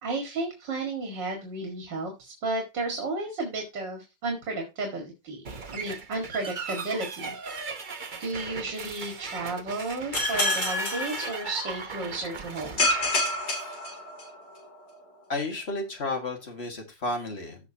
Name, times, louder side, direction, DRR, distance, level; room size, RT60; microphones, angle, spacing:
voice 1, 0.0-5.4 5.7-7.3 8.2-12.8, right 2 dB, 80° right, 2 dB, 2.8 m, -33 dB
sound 1, 5.4-13.8, right 5 dB, 35° right, 0.9 m, -38 dB
sound 2, 10.1-11.9 12.8-14.6, left 2 dB, 75° left, 3.8 m, -28 dB
voice 2, 15.3-17.7, left 2 dB, 35° left, 2 dB, 2.3 m, -32 dB
15.5 x 5.8 x 2.9 m, 0.25 s
omnidirectional pair, 1.9 m